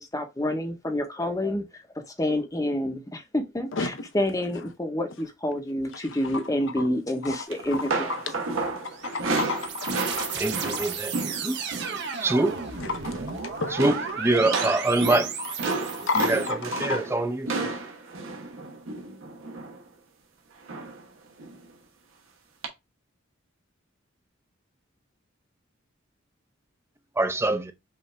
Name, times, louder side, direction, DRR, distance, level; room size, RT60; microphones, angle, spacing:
voice 1, 0.0-1.6 2.2-8.1, left 1 dB, 15° left, 0.8 m, -28 dB
voice 2, 3.7-4.0 5.9-6.4 6.8-6.9 7.2-8.2 8.5-10.9 12.2-12.3 12.8-14.7 15.1-17.1, left 3 dB, 65° left, 0.8 m, -33 dB
sound 1, 7.5-12.0 12.3-12.6 12.9-13.4 13.8-19.8 20.7-21.0 21.4-21.6 22.6-22.7, right 3 dB, 85° right, 1.1 m, -32 dB
sound 2, 8.9-16.5, right 6 dB, 60° right, 0.9 m, -34 dB
voice 3, 10.4-11.1 12.2-12.5 13.8-15.2 16.3-16.4 16.8-17.7 27.2-27.7, right 2 dB, 15° right, 0.6 m, -24 dB
5.6 x 2.6 x 3.2 m
head